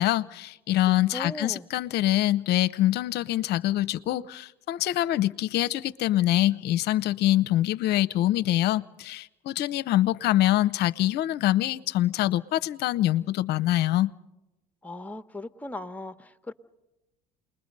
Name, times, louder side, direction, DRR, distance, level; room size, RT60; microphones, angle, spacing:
voice 1, 0.0-14.1, left 14 dB, 50° left, 0.7 m, -25 dB
voice 2, 0.9-1.7 14.8-16.5, left 1 dB, 5° left, 1.0 m, -38 dB
29.0 x 21.0 x 5.4 m
hypercardioid pair, 75°, 21 cm